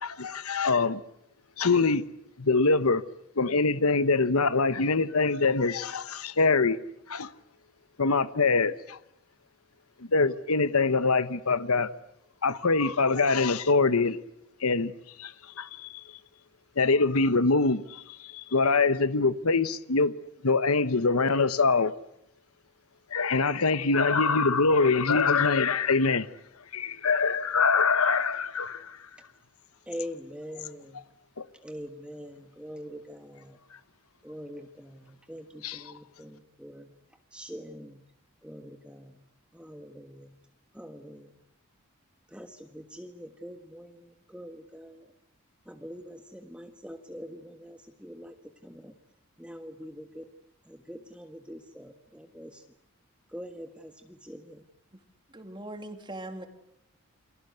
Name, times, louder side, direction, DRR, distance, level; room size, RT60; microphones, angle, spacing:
voice 1, 0.0-1.0 1.6-2.0 2.4-3.0 3.4-6.8 7.1-7.3 8.0-9.0 10.1-11.9 12.4-14.2 14.6-14.9 15.2-15.3 15.6-15.9 16.8-20.1 20.4-21.9 23.1-26.3 26.7-29.0 31.4-31.5 35.6-35.9, left 4 dB, 85° left, 1.1 m, -24 dB
voice 2, 29.9-31.0 31.6-33.6 34.2-36.9 37.3-38.0 38.4-39.1 39.5-40.4 40.7-41.4 42.3-45.1 45.7-48.4 48.6-48.9 49.4-50.3 50.7-52.6 53.3-54.7, equal, 5° right, 1.4 m, -44 dB
voice 3, 55.3-56.5, right 1 dB, 20° right, 3.1 m, -40 dB
29.5 x 24.5 x 8.1 m
head